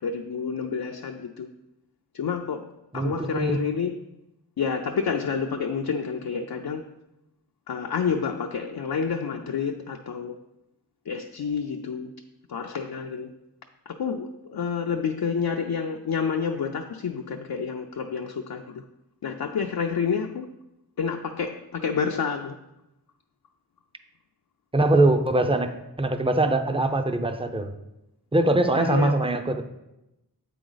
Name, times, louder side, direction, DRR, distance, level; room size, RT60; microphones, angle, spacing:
voice 1, 0.0-1.5 2.1-2.7 2.9-3.9 4.6-6.8 7.7-10.4 11.1-12.1 12.5-13.3 13.9-18.8 19.2-20.5 21.0-22.6 28.8-29.2, left 6 dB, 70° left, 3 dB, 0.5 m, -29 dB
voice 2, 2.9-3.6 24.7-27.7 28.3-29.6, right 2 dB, 15° right, 7 dB, 0.6 m, -22 dB
7.9 x 5.0 x 3.9 m, 0.91 s
wide cardioid pair, 50°, 38 cm